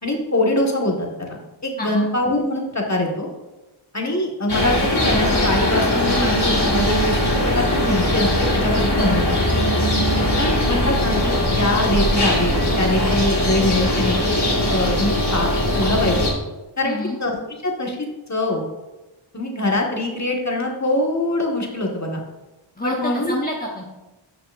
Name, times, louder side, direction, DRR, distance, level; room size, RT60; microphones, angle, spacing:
voice 1, 0.0-3.3 3.9-9.4 10.4-14.4 14.7-16.3 16.8-17.3 17.6-18.0 18.3-18.6 19.3-22.2 22.8-23.4, left 1 dB, 35° left, 0 dB, 1.7 m, -23 dB
sound 1, 4.5-16.3, left 1 dB, 50° left, 2.1 m, -20 dB
voice 2, 16.8-17.2 22.8-23.8, left 1 dB, 20° left, -2 dB, 1.1 m, -28 dB
12.5 x 6.0 x 2.6 m, 1.1 s
wide cardioid pair, 55°, 50 cm